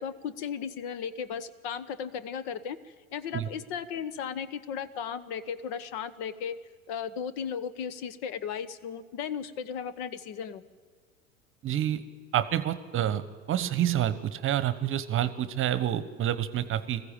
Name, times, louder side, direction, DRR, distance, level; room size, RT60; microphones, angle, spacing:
voice 1, 0.0-6.6 6.9-10.6, left 7 dB, 50° left, 15 dB, 1.1 m, -36 dB
voice 2, 11.6-12.0 12.3-13.2 13.5-17.0, right 11 dB, 30° right, 15 dB, 1.1 m, -28 dB
20.5 x 15.0 x 8.9 m, 1.5 s
figure-of-eight pair, 80°, 41 cm